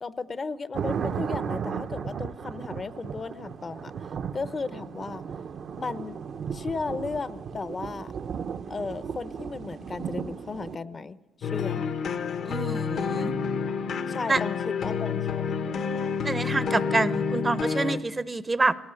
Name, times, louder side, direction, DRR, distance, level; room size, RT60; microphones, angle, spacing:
voice 1, 0.0-3.9 4.3-5.2 5.8-6.2 6.5-8.1 8.7-11.8 14.1-15.9, left 4 dB, 35° left, 14 dB, 0.9 m, -35 dB
sound 1, 0.7-10.8, right 7 dB, 55° right, 0.9 m, -35 dB
sound 2, 11.4-18.0, left 6 dB, 65° left, 1.3 m, -29 dB
voice 2, 12.4-13.3 14.3-14.4 16.2-18.7, right 3 dB, 25° right, 15 dB, 0.8 m, -27 dB
19.5 x 17.5 x 9.9 m, 1.2 s
cardioid pair, 90°, 0 cm